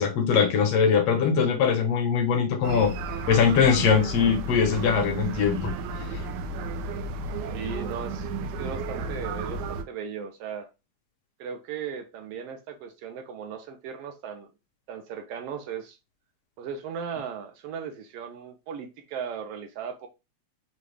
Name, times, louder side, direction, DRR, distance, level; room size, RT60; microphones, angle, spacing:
voice 1, 0.0-2.9 3.3-5.7 6.0-6.2, left 6 dB, 70° left, 1.7 m, -22 dB
sound 1, 2.6-9.8, right 3 dB, 90° right, 2.0 m, -33 dB
voice 2, 7.5-10.7 11.4-14.5 14.9-16.0 16.6-20.1, right 7 dB, 75° right, 1.5 m, -37 dB
5.4 x 2.4 x 3.2 m
omnidirectional pair, 3.3 m